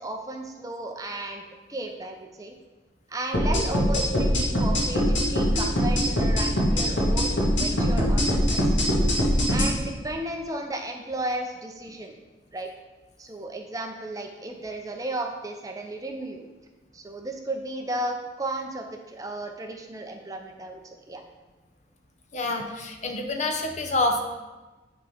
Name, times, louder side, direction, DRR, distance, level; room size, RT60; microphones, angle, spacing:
voice 1, 0.0-1.4 1.7-2.5 3.1-8.8 9.5-12.2 12.5-12.7 13.2-16.5 16.9-20.8 21.1-21.2, right 1 dB, 20° right, 3 dB, 0.6 m, -34 dB
sound 1, 3.3-9.7, equal, 70° left, 1.7 m, -22 dB
voice 2, 22.3-24.2, left 2 dB, 40° left, 4 dB, 0.7 m, -27 dB
8.4 x 3.9 x 5.0 m, 1.2 s
head